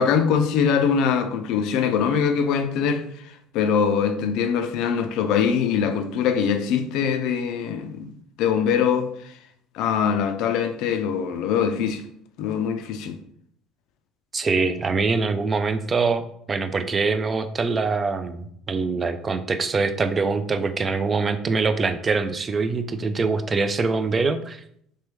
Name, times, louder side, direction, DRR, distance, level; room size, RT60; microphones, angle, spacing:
voice 1, 0.0-3.0 3.5-8.1 8.4-9.3 9.7-12.0 12.4-13.2, left 7 dB, 70° left, 0.3 m, -22 dB
voice 2, 14.3-24.6, right 4 dB, 30° right, 0.3 m, -24 dB
3.3 x 2.2 x 3.0 m
supercardioid pair, 85°, 0 cm